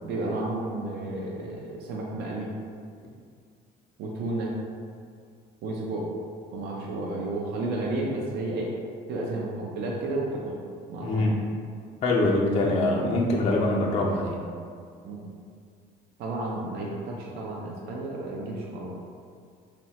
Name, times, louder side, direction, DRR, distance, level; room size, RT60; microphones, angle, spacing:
voice 1, 0.0-2.5 4.0-4.5 5.6-6.1 6.5-8.7 9.1-10.6 10.9-11.2 15.0-15.2 16.2-19.0, right 2 dB, 75° right, -3 dB, 0.4 m, -32 dB
voice 2, 11.0-11.5 12.0-14.4, left 2 dB, 40° left, -2 dB, 0.4 m, -24 dB
3.0 x 2.1 x 2.7 m, 2.2 s
cardioid pair, 110°, 17 cm